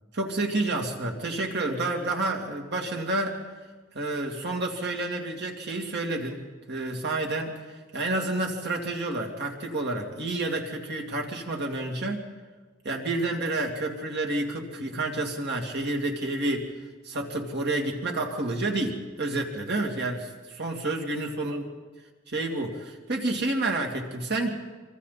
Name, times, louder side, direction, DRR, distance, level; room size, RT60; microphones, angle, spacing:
voice 1, 0.1-3.4 3.9-12.2 12.8-16.7 17.0-21.6 22.3-24.5, right 2 dB, 55° right, 1 dB, 2.8 m, -29 dB
25.5 x 25.0 x 4.2 m, 1.4 s
head